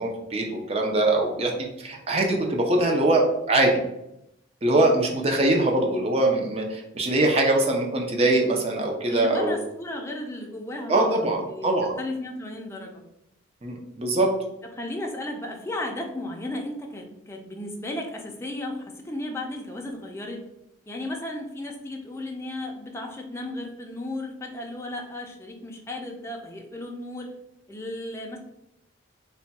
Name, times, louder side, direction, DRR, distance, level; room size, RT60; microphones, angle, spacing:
voice 1, 0.0-1.5 1.8-3.7 4.6-9.6 10.9-11.9 13.6-14.3, right 2 dB, 30° right, 1 dB, 0.6 m, -22 dB
voice 2, 9.1-13.0 14.7-20.4 20.9-27.3 27.7-28.4, left 1 dB, 15° left, 1 dB, 0.4 m, -34 dB
3.3 x 2.2 x 4.1 m, 0.84 s
head